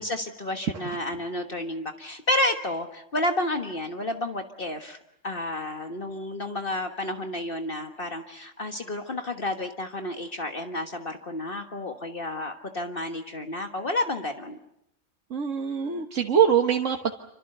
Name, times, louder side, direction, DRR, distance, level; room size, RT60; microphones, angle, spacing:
voice 1, 0.0-5.0 5.2-14.6, left 1 dB, 45° left, 6 dB, 1.6 m, -31 dB
voice 2, 15.3-17.1, right 7 dB, 85° right, 4 dB, 1.7 m, -23 dB
27.0 x 26.0 x 6.7 m, 0.80 s
omnidirectional pair, 1.3 m